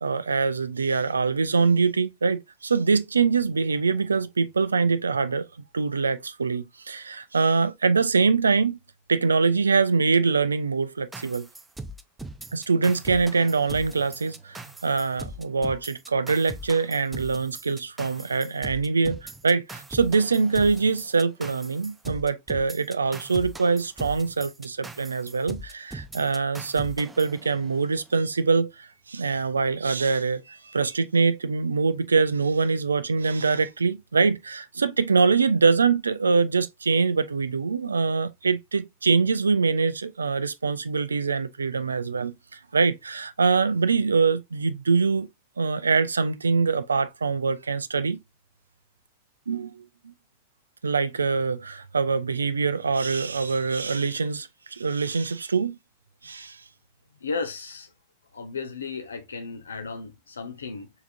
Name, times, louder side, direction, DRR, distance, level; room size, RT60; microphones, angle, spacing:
voice 1, 0.0-5.5 5.7-8.8 9.1-11.5 12.5-45.3 45.6-48.2 49.5-49.8 50.8-55.8 56.2-56.6, right 4 dB, 75° right, 0.4 m, -24 dB
sound 1, 11.1-28.0, right 2 dB, 10° right, 0.5 m, -40 dB
voice 2, 57.2-57.9 58.3-60.9, left 4 dB, 70° left, 0.7 m, -34 dB
4.5 x 3.5 x 2.5 m
figure-of-eight pair, 90°, 0 cm